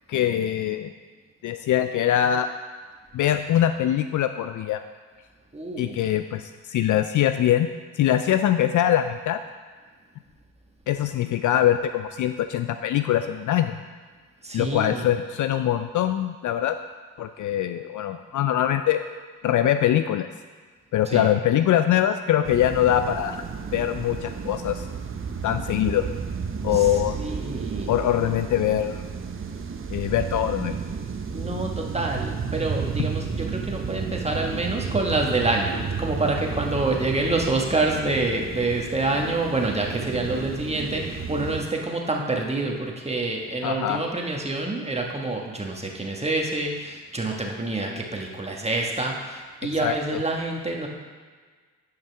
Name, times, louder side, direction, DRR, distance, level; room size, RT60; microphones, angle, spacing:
voice 1, 0.1-0.9 1.4-2.5 3.1-4.8 5.8-7.7 8.0-9.4 10.9-13.8 14.5-16.8 17.2-19.0 19.4-20.3 20.9-23.4 23.7-24.9 25.4-26.1 26.6-27.3 27.9-29.0 29.9-30.8 43.6-44.0 49.8-50.2, left 11 dB, 50° left, 9 dB, 0.4 m, -23 dB
voice 2, 5.5-6.0 14.4-15.0 21.1-21.3 26.7-26.8 27.2-27.9 31.3-50.9, right 2 dB, 15° right, 0 dB, 1.5 m, -27 dB
sound 1, 22.4-41.6, right 6 dB, 35° right, 0.8 m, -32 dB
10.5 x 5.7 x 3.5 m, 1.5 s
supercardioid pair, 55°, 39 cm